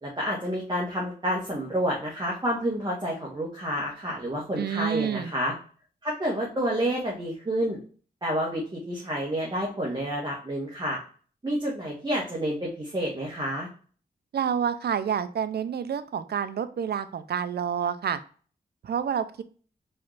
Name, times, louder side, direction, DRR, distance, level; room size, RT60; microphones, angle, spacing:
voice 1, 0.0-5.5 6.0-7.8 8.2-11.0 11.4-13.7, equal, 25° right, -3 dB, 1.3 m, -29 dB
voice 2, 4.6-5.3 14.3-18.2 18.8-19.4, right 8 dB, 65° right, 12 dB, 0.5 m, -28 dB
4.3 x 3.2 x 2.4 m, 0.42 s
cardioid pair, 60°, 18 cm